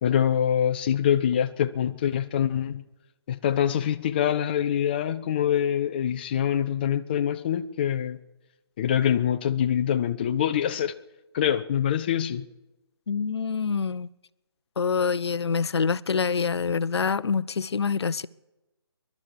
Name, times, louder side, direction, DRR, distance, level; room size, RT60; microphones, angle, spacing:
voice 1, 0.0-2.8 3.3-8.2 8.8-10.9 11.3-12.5, left 9 dB, 25° left, 9 dB, 0.5 m, -25 dB
voice 2, 13.1-14.1 14.8-18.3, left 5 dB, 80° left, 18 dB, 0.6 m, -26 dB
23.0 x 11.5 x 4.8 m, 0.99 s
hypercardioid pair, 165°, 14 cm